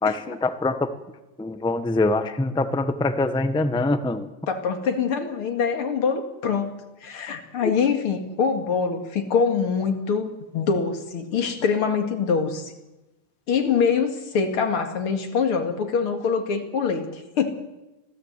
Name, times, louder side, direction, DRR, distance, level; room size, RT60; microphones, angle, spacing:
voice 1, 0.0-0.9 1.4-4.3 7.6-7.7, left 2 dB, 5° left, 9 dB, 0.6 m, -24 dB
voice 2, 4.5-12.7 13.5-17.5, left 6 dB, 90° left, 5 dB, 3.0 m, -24 dB
25.0 x 16.5 x 8.2 m, 1.0 s
omnidirectional pair, 2.3 m